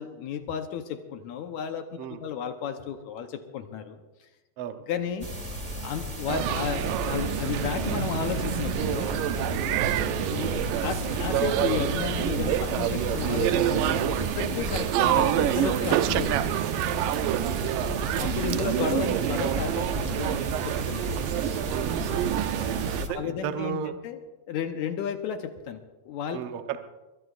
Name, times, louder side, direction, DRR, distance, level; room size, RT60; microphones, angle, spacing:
voice 1, 0.0-4.3 4.9-5.3 5.8-9.1 10.3-16.6 18.1-21.4 22.7-22.8 23.1-23.8 24.0-24.2 24.5-26.4, left 7 dB, 70° left, 6 dB, 2.1 m, -33 dB
sound 1, 5.2-23.1, equal, 45° right, 0.5 m, -35 dB
sound 2, 6.3-23.0, right 13 dB, 85° right, 2.2 m, -27 dB
sound 3, 6.4-14.3, left 2 dB, 35° left, 1.1 m, -38 dB
voice 2, 9.6-10.1 14.7-14.9 17.2-17.5 21.7-22.4 23.0-23.9 26.3-26.8, right 8 dB, 65° right, 7 dB, 1.6 m, -35 dB
22.0 x 22.0 x 2.5 m, 1.1 s
omnidirectional pair, 3.8 m